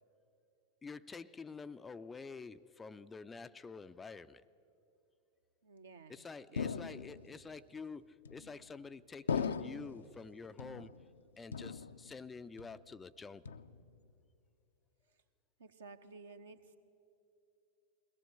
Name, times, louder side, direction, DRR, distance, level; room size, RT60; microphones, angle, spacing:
voice 1, 0.8-4.4 6.1-11.1 11.4-13.5, left 4 dB, 15° left, 0.4 m, -48 dB
voice 2, 5.6-6.2 6.5-6.7 15.6-16.8, right 4 dB, 70° right, 1.2 m, -54 dB
sound 1, 6.6-7.4 8.2-8.8 9.3-10.1 10.6-11.2 11.5-12.3 12.6-13.0 13.4-14.0, left 6 dB, 70° left, 0.5 m, -39 dB
22.0 x 18.0 x 7.8 m
figure-of-eight pair, 90°, 0 cm